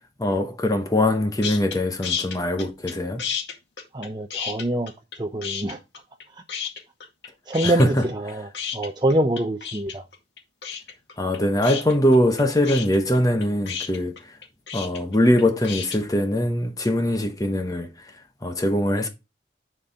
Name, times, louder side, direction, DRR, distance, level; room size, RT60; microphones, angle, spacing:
voice 1, 0.2-3.2 7.6-8.0 11.2-14.4 14.7-19.1, left 1 dB, 20° left, 0.9 m, -22 dB
sound 1, 1.4-1.8 2.0-2.9 3.2-5.2 5.4-6.2 6.5-7.3 7.5-16.0, left 7 dB, 65° left, 2.1 m, -31 dB
voice 2, 3.9-4.9 5.2-5.8 6.3-6.4 7.5-10.0, right 1 dB, 25° right, 0.6 m, -25 dB
10.5 x 4.5 x 3.8 m
head